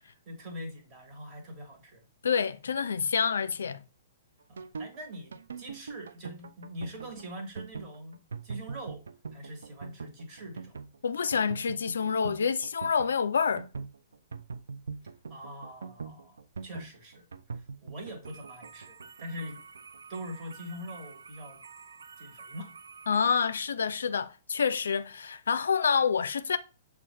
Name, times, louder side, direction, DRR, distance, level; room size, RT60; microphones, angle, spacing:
voice 1, 0.0-2.0 4.5-9.0 9.3-10.8 15.3-19.6 20.1-21.6 22.2-22.7, equal, 30° right, 1.3 m, -43 dB
voice 2, 2.2-3.8 11.0-13.7 23.1-26.6, left 6 dB, 70° left, 0.3 m, -27 dB
sound 1, 4.4-23.5, right 5 dB, 70° right, 0.3 m, -43 dB
6.7 x 2.4 x 3.1 m
figure-of-eight pair, 115°, 0 cm